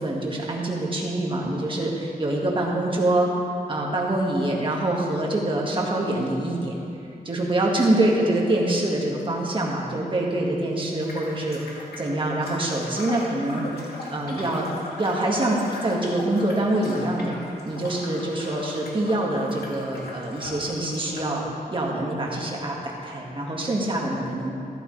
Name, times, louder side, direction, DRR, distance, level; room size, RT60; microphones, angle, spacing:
voice 1, 0.0-3.3 3.7-6.8 7.3-13.8 14.1-14.7 15.0-17.4 17.7-24.5, right 1 dB, 30° right, -2 dB, 1.8 m, -25 dB
sound 1, 11.0-21.4, left 2 dB, 80° left, 2.0 m, -39 dB
14.0 x 13.0 x 3.3 m, 2.5 s
wide cardioid pair, 145°, 16 cm